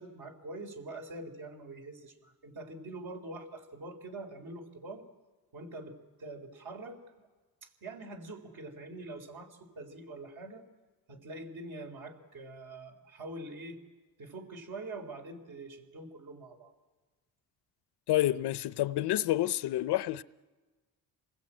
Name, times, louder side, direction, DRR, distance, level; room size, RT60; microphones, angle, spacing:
voice 1, 0.0-5.0 5.5-7.3 7.6-10.6 11.1-13.8 14.2-16.7, right 2 dB, 65° right, 3.8 m, -44 dB
voice 2, 18.1-20.2, left 14 dB, 85° left, 0.7 m, -28 dB
28.0 x 20.0 x 8.8 m
cardioid pair, 125°, 39 cm